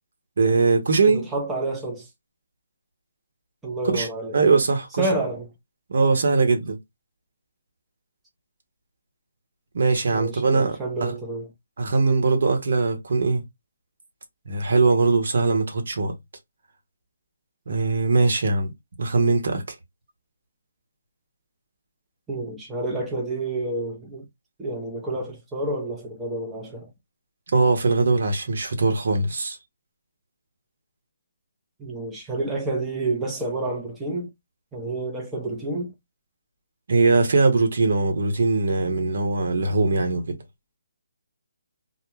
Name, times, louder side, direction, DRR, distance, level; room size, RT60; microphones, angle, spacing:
voice 1, 0.4-1.3 3.8-4.1 4.3-5.0 5.9-6.8 9.7-11.1 11.8-13.4 14.5-16.1 17.7-18.7 19.0-19.6 27.5-29.6 36.9-40.4, right 3 dB, 60° right, 0.9 m, -21 dB
voice 2, 1.1-2.1 3.6-4.5 5.0-5.5 10.1-11.5 22.3-24.2 24.6-26.9 31.8-34.3 34.7-35.9, right 2 dB, 5° right, 0.6 m, -29 dB
2.3 x 2.0 x 3.2 m
hypercardioid pair, 155°, 0 cm